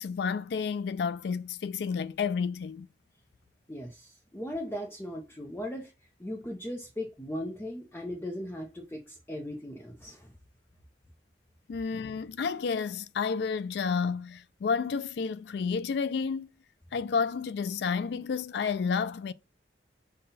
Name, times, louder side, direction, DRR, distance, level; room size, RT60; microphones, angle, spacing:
voice 1, 0.0-2.9 11.7-16.5 16.9-19.3, left 5 dB, 60° left, 0.3 m, -30 dB
voice 2, 3.7-5.9 6.2-10.3, left 1 dB, 10° left, 0.6 m, -38 dB
5.6 x 2.2 x 4.0 m
head